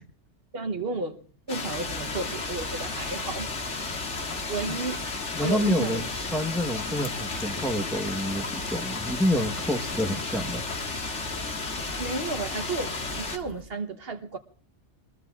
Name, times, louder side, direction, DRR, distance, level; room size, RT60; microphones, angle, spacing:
voice 1, 0.5-1.2 1.5-3.8 4.5-5.0 5.4-6.1 12.0-14.4, right 3 dB, 55° right, 8 dB, 1.2 m, -32 dB
sound 1, 1.5-13.4, left 3 dB, 75° left, 2.1 m, -33 dB
sound 2, 1.7-13.6, equal, 45° left, 3.1 m, -44 dB
voice 2, 5.3-10.6, equal, ahead, 3 dB, 1.0 m, -28 dB
27.0 x 21.0 x 2.4 m, 0.40 s
omnidirectional pair, 1.2 m